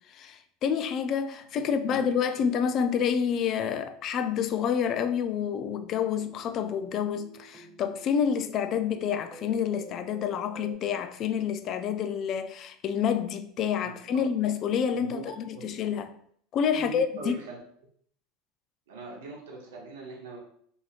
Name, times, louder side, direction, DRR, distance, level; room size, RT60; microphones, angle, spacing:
voice 1, 0.1-16.1 16.5-17.4, left 7 dB, 50° left, 0.3 m, -28 dB
voice 2, 1.6-2.0 2.4-2.5 13.8-14.2 14.9-15.7 16.7-17.6 18.9-20.4, right 2 dB, 75° right, 0.7 m, -41 dB
sound 1, 5.4-10.7, right 2 dB, 20° right, 0.7 m, -51 dB
2.7 x 2.7 x 2.4 m
hypercardioid pair, 80°, 0 cm